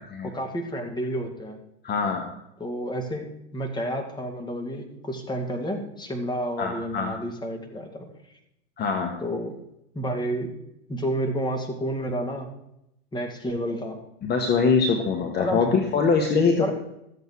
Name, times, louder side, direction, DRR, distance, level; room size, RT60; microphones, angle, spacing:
voice 1, 0.2-1.6 2.6-8.1 9.2-9.5 9.9-10.5 10.9-12.5 13.1-14.0 15.4-15.7 16.6-16.7, equal, 15° left, 4 dB, 2.1 m, -30 dB
voice 2, 1.8-2.2 6.6-7.1 8.8-9.1 14.2-16.7, left 5 dB, 30° left, 3 dB, 1.5 m, -23 dB
13.5 x 8.2 x 4.7 m, 0.81 s
hypercardioid pair, 115°, 33 cm